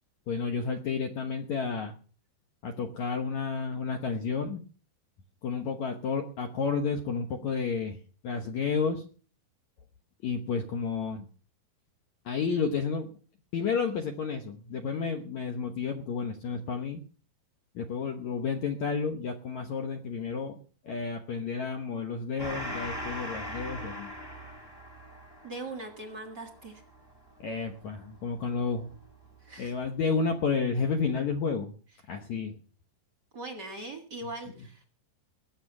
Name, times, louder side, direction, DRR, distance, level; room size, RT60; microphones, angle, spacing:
voice 1, 0.3-1.9 2.6-4.6 5.4-9.1 10.2-11.3 12.3-13.1 13.5-17.0 17.8-20.6 20.8-24.1 27.4-28.9 29.6-31.7 32.1-32.6, left 5 dB, 70° left, 4 dB, 1.8 m, -31 dB
Gong, 22.4-29.3, equal, 15° left, 0.7 m, -41 dB
voice 2, 25.4-26.8 29.4-29.7 33.3-34.8, right 2 dB, 45° right, 4 dB, 1.3 m, -40 dB
20.0 x 8.4 x 6.0 m, 0.41 s
omnidirectional pair, 4.7 m